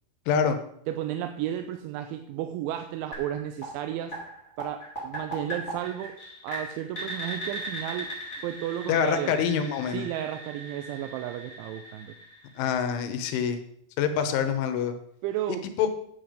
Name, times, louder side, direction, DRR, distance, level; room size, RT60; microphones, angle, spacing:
voice 1, 0.3-0.6 8.9-10.1 12.6-13.6 14.0-14.9 15.8-15.9, left 7 dB, 80° left, 8 dB, 3.4 m, -25 dB
voice 2, 0.9-4.2 4.6-6.2 6.4-8.1 8.4-9.4 9.9-12.2 15.2-15.7, right 11 dB, 85° right, 8 dB, 2.8 m, -33 dB
sound 1, 3.1-12.9, right 1 dB, 15° left, 2.9 m, -39 dB
9.6 x 8.1 x 5.1 m, 0.69 s
omnidirectional pair, 5.5 m